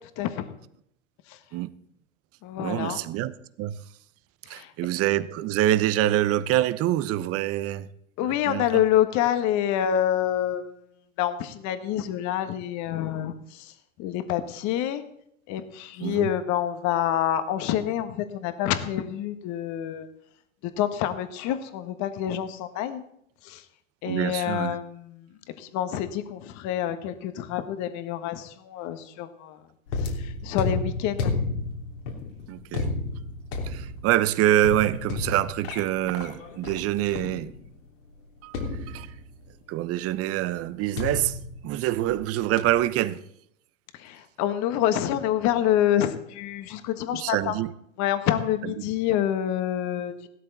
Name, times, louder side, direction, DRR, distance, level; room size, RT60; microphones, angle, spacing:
voice 1, 0.2-0.5 1.3-1.4 2.4-3.0 4.5-4.7 8.2-10.7 11.2-13.7 14.0-15.0 15.5-20.1 20.6-23.0 23.4-23.6 24.0-29.6 30.0-31.3 44.0-47.6 48.0-50.3, left 11 dB, 45° left, 1.6 m, -27 dB
voice 2, 2.6-3.8 4.5-7.9 8.2-8.8 16.0-16.3 24.0-24.8 32.5-32.9 33.6-37.5 38.4-39.1 39.7-41.4 41.6-43.2 47.1-47.7 48.6-48.8, right 13 dB, 35° right, 0.9 m, -26 dB
sound 1, 29.9-37.8 38.5-39.5 41.0-42.2 42.6-42.9, left 3 dB, 70° left, 3.3 m, -32 dB
17.0 x 12.5 x 4.1 m
hypercardioid pair, 95°, 39 cm